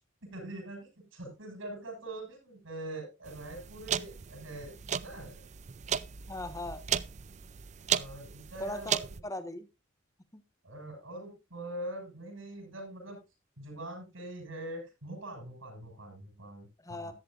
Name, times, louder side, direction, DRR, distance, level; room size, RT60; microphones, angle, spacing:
voice 1, 0.2-5.5 7.9-9.2 10.6-13.2 13.6-17.1, right 1 dB, 90° right, 2 dB, 7.5 m, -43 dB
sound 1, 3.3-9.2, right 8 dB, 35° right, 0.5 m, -36 dB
voice 2, 6.3-6.8 8.6-9.7 10.3-10.4 16.8-17.1, left 1 dB, 15° left, 10 dB, 1.4 m, -39 dB
14.0 x 11.0 x 2.6 m, 0.26 s
head